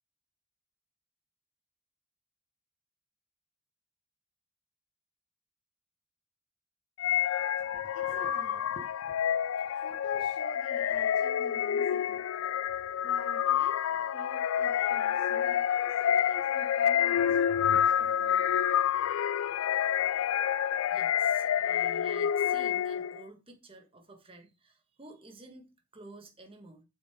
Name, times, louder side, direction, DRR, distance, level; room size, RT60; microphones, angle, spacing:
sound 1, 7.0-23.2, left 9 dB, 90° left, 0.3 m, -28 dB
voice 1, 7.6-9.2 9.6-12.2 13.0-17.4 17.6-18.4 21.2-21.3, left 1 dB, 65° left, 1.8 m, -48 dB
voice 2, 20.9-26.8, right 2 dB, 25° right, 1.6 m, -51 dB
8.2 x 6.2 x 3.7 m
head